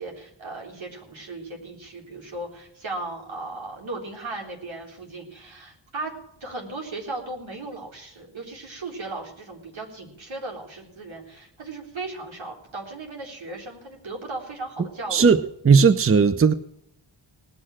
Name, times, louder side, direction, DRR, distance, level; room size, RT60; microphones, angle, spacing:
voice 1, 0.0-6.1 6.4-15.3, right 2 dB, 75° right, 4.0 m, -36 dB
voice 2, 15.1-16.5, right 5 dB, 30° right, 0.7 m, -17 dB
19.0 x 6.5 x 7.5 m
cardioid pair, 55°, 47 cm